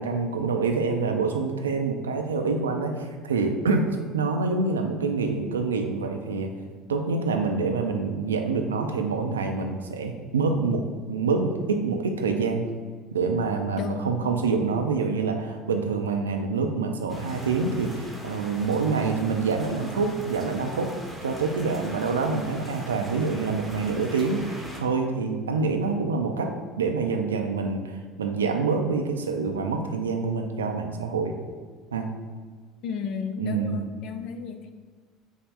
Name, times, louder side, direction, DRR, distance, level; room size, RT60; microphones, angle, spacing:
voice 1, 0.0-2.9 3.2-3.8 4.1-6.5 6.9-10.8 11.1-12.6 13.1-20.9 21.2-26.5 26.8-31.3 31.9-32.1 33.4-33.8, right 4 dB, 75° right, 4 dB, 0.4 m, -26 dB
voice 2, 13.8-14.2 32.8-34.6, left 6 dB, 50° left, 7 dB, 0.4 m, -33 dB
sound 1, 17.1-24.8, equal, ahead, 1.0 m, -41 dB
5.3 x 2.1 x 4.7 m, 1.5 s
figure-of-eight pair, 60°, 0 cm